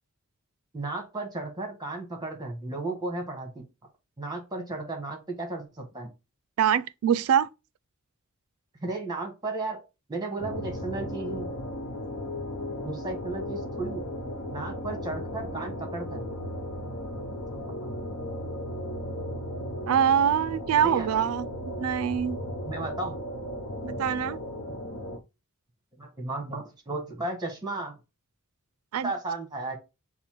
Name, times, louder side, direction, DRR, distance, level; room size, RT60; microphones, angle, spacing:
voice 1, 0.7-3.6 4.2-6.1 8.8-9.8 10.1-11.5 12.8-14.1 14.5-16.2 17.5-17.6 20.8-21.1 22.6-23.2 26.0-27.9 29.0-29.8, right 2 dB, 20° right, 1.3 m, -34 dB
voice 2, 6.6-7.5 19.9-21.5 21.8-22.4 23.8-24.4 28.9-29.1, right 9 dB, 90° right, 0.4 m, -24 dB
sound 1, 10.4-25.2, equal, 70° left, 0.9 m, -35 dB
5.3 x 2.1 x 4.5 m
head